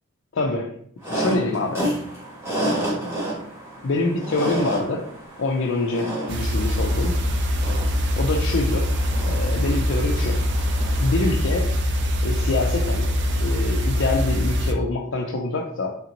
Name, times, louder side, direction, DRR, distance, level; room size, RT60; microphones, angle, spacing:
voice 1, 0.3-0.8 1.1-1.9 3.8-5.1 5.4-7.1 8.2-8.9 9.2-10.4 11.0-11.7 12.2-13.1 13.4-16.0, left 2 dB, 60° left, -1 dB, 0.4 m, -25 dB
sound 1, 1.0-11.3, right 1 dB, 10° right, 0.9 m, -31 dB
sound 2, 6.3-14.7, left 1 dB, 55° right, 0.5 m, -23 dB
3.9 x 3.4 x 2.9 m, 0.64 s
head